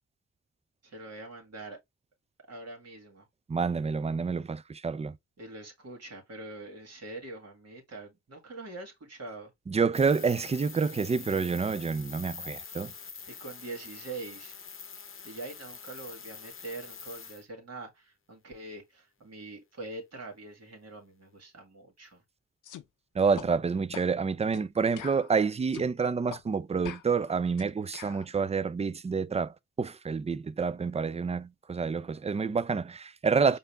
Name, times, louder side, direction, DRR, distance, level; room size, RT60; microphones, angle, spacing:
voice 1, 0.8-1.8 2.5-3.3 5.4-9.5 13.3-14.6 15.2-22.2, right 2 dB, 55° right, 2.1 m, -44 dB
voice 2, 3.5-5.2 9.7-12.9 23.1-33.6, right 5 dB, 20° right, 0.4 m, -28 dB
sound 1, 9.9-17.4, left 6 dB, 40° left, 0.8 m, -45 dB
sound 2, 22.6-22.9 23.4-23.5 23.9-24.1 24.5-24.7 25.0-25.9 26.3-26.4 26.8-28.3, left 11 dB, 75° left, 0.6 m, -44 dB
4.8 x 2.7 x 3.4 m
supercardioid pair, 40°, 32 cm